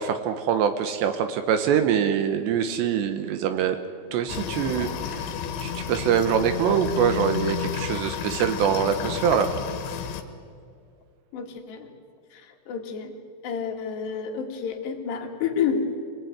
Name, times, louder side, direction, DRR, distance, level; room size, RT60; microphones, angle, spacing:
voice 1, 0.0-3.8 4.1-5.3 5.6-9.5, right 8 dB, 80° right, 9 dB, 3.2 m, -24 dB
sound 1, 4.0-7.9, left 7 dB, 10° left, 2.5 m, -36 dB
sound 2, 4.3-10.2, left 7 dB, 85° left, 3.8 m, -32 dB
voice 2, 11.3-11.9 12.3-13.1 13.4-15.8, left 6 dB, 70° left, 3 dB, 4.0 m, -29 dB
25.0 x 18.5 x 9.5 m, 2.2 s
omnidirectional pair, 5.3 m